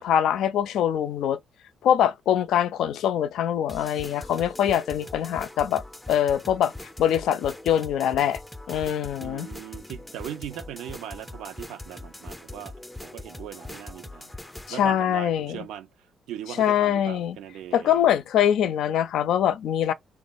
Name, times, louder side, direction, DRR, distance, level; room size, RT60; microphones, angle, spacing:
voice 1, 0.0-1.4 1.8-6.7 7.0-8.4 8.7-9.5 14.7-15.6 16.6-17.4 17.7-19.9, left 10 dB, 80° left, 0.4 m, -23 dB
sound 1, 3.7-14.7, left 1 dB, 10° left, 0.5 m, -41 dB
voice 2, 9.2-12.7 13.0-14.3 14.7-15.9 16.3-18.0, right 11 dB, 90° right, 0.6 m, -39 dB
3.0 x 2.4 x 4.1 m
cardioid pair, 90°, 0 cm